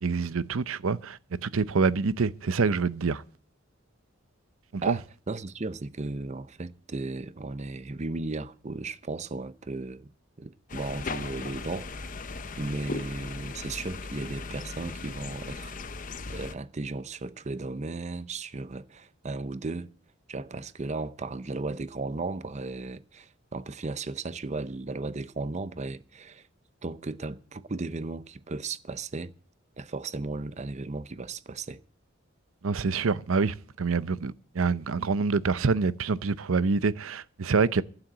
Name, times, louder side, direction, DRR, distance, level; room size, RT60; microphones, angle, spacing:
voice 1, 0.0-3.2 4.7-5.0 32.6-37.8, right 4 dB, 90° right, 0.6 m, -26 dB
voice 2, 4.8-12.0 12.6-15.8 16.3-19.9 20.3-26.4 26.8-29.3 29.8-31.8, right 3 dB, 35° right, 0.6 m, -35 dB
sound 1, 10.7-16.5, left 3 dB, 40° left, 0.8 m, -38 dB
11.5 x 9.0 x 7.9 m
head